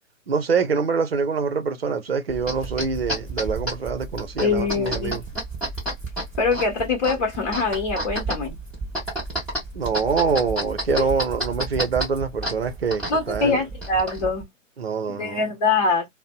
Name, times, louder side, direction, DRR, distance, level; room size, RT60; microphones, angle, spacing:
voice 1, 0.3-5.2 9.7-13.6 14.8-15.4, right 5 dB, 50° right, 0.6 m, -25 dB
sound 1, 2.3-14.4, right 1 dB, ahead, 0.9 m, -31 dB
voice 2, 4.4-5.2 6.4-8.5 10.9-11.1 13.1-14.5 15.1-16.1, left 4 dB, 30° left, 1.1 m, -23 dB
2.5 x 2.1 x 2.4 m
figure-of-eight pair, 135°, 40 cm